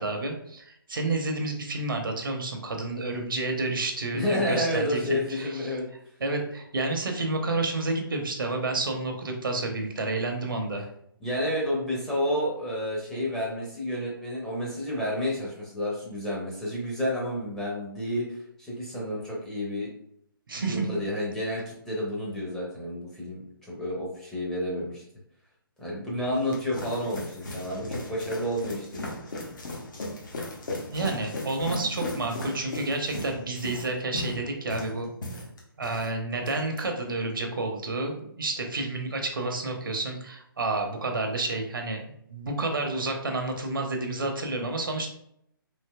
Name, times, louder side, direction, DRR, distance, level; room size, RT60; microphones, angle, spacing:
voice 1, 0.0-5.8 6.2-10.9 20.5-20.9 30.9-35.1 35.8-45.1, right 2 dB, 65° right, 3 dB, 0.7 m, -30 dB
voice 2, 4.1-5.9 11.2-19.9 20.6-25.0 25.8-29.1, left 1 dB, 5° left, -7 dB, 0.6 m, -30 dB
sound 1, 26.1-36.1 36.4-36.8, left 1 dB, 60° left, 0.9 m, -37 dB
3.3 x 2.7 x 2.2 m, 0.72 s
figure-of-eight pair, 135°, 12 cm